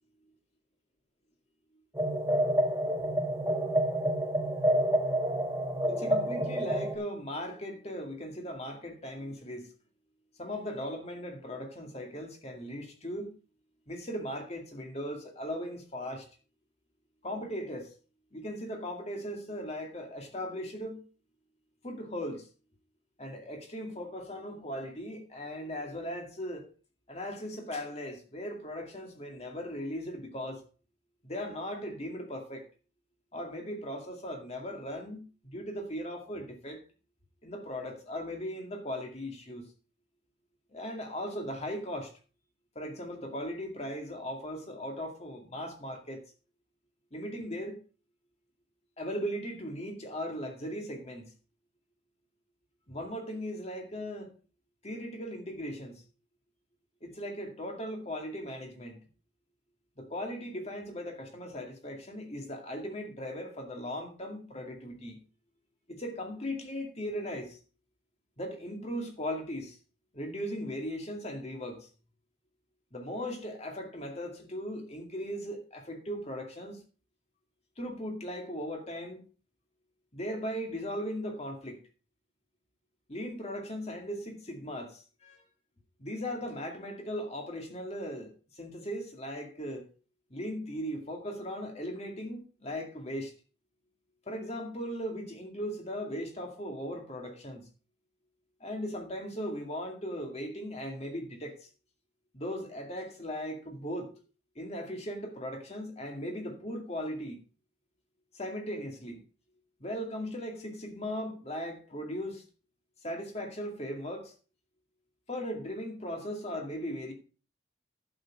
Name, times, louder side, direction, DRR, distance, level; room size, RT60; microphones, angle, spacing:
sound 1, 1.9-7.0, right 1 dB, 15° right, 1.6 m, -28 dB
voice 1, 5.9-9.7 10.4-13.3 13.9-16.3 17.2-17.9 18.3-21.0 21.8-22.5 23.2-26.7 27.1-30.6 31.2-32.7 33.3-36.8 37.4-39.7 40.7-42.1 42.8-46.2 47.1-47.8 49.0-51.3 52.9-54.3 54.8-56.0 57.0-59.0 60.0-65.2 65.9-67.6 68.4-69.8 70.1-71.9 72.9-76.8 77.8-79.2 80.1-81.8 83.1-85.4 86.0-89.9 90.3-93.3 94.3-97.7 98.6-101.7 102.3-104.1 104.6-107.4 108.3-109.2 109.8-112.4 113.0-114.3 115.3-117.1, equal, 35° left, 2.2 m, -38 dB
11.0 x 6.9 x 4.8 m
head